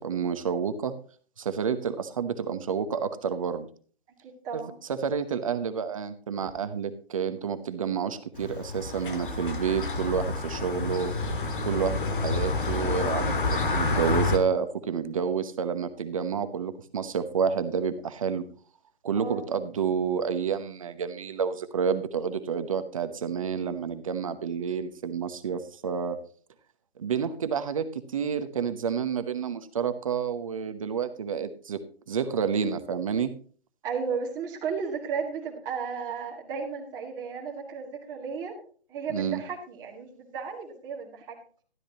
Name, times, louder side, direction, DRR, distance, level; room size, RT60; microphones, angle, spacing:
voice 1, 0.0-0.9 1.4-3.7 4.5-4.6 4.9-11.1 11.6-18.5 19.0-26.2 27.0-33.3 39.1-39.4, right 6 dB, 35° right, 10 dB, 0.9 m, -29 dB
voice 2, 4.2-4.8 19.1-19.4 33.8-38.6 38.9-41.4, right 6 dB, 10° right, -2 dB, 1.9 m, -34 dB
sound 1, 8.4-14.4, left 3 dB, 55° left, 1.7 m, -29 dB
12.5 x 11.5 x 2.8 m, 0.42 s
hypercardioid pair, 165°, 31 cm